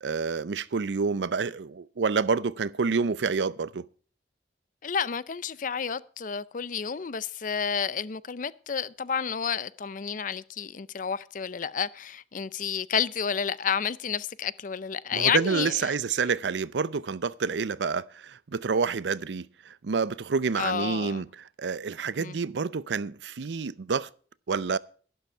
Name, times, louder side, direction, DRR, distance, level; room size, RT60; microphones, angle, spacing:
voice 1, 0.0-3.9 15.1-21.3 21.6-24.1 24.5-24.8, right 5 dB, 85° right, 0.5 m, -28 dB
voice 2, 4.8-15.7 20.6-21.2 22.2-22.4, left 7 dB, 50° left, 0.5 m, -30 dB
12.0 x 11.5 x 4.5 m
head